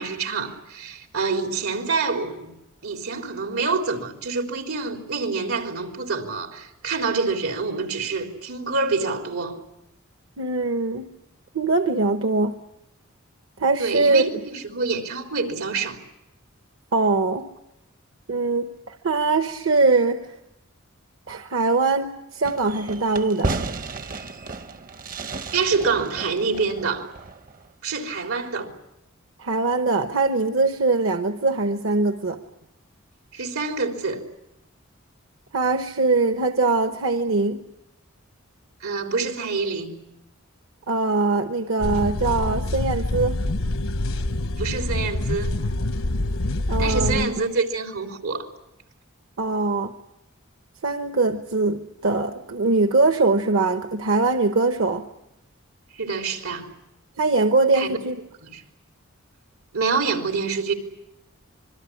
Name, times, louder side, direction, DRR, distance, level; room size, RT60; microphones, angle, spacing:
voice 1, 0.0-2.5 2.8-9.6 13.8-16.0 25.5-27.1 27.8-28.7 33.3-34.2 38.8-40.0 44.5-45.5 46.8-48.5 56.0-56.7 57.7-58.0 58.4-58.6 59.7-60.7, right 4 dB, 90° right, 3.7 m, -26 dB
voice 2, 10.4-11.1 11.5-12.6 13.6-14.4 16.9-17.5 18.3-20.2 21.3-23.5 29.4-32.4 35.5-37.6 40.9-43.4 46.7-47.3 49.4-49.9 50.8-55.0 57.2-58.1, right 3 dB, 65° right, 1.1 m, -22 dB
Fireworks, 22.4-27.7, right 3 dB, 40° right, 0.9 m, -33 dB
sound 1, 41.8-47.2, left 2 dB, 75° left, 1.0 m, -26 dB
26.5 x 22.5 x 8.6 m
head